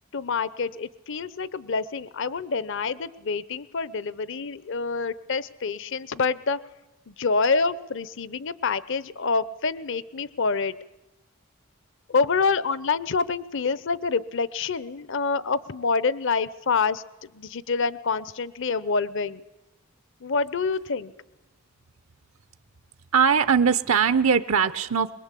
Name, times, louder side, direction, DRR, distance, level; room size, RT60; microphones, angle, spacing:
voice 1, 0.1-6.6 7.1-10.7 12.1-17.0 17.3-19.4 20.2-21.1, left 4 dB, 60° left, 17 dB, 0.8 m, -27 dB
voice 2, 23.1-25.1, right 6 dB, 80° right, 11 dB, 0.8 m, -20 dB
23.0 x 21.5 x 8.3 m, 0.97 s
head